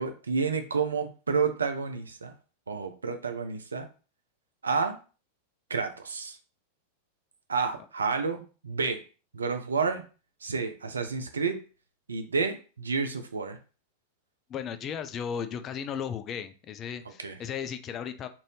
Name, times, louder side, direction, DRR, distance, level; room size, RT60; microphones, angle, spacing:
voice 1, 0.0-2.3 2.7-3.9 4.6-5.0 5.7-6.4 7.5-9.0 9.3-10.0 10.4-11.6 12.1-13.6 17.2-17.4, right 5 dB, 75° right, 7 dB, 0.5 m, -30 dB
voice 2, 14.5-18.3, left 7 dB, 30° left, 9 dB, 0.3 m, -35 dB
2.6 x 2.6 x 3.2 m, 0.36 s
figure-of-eight pair, 90°, 0 cm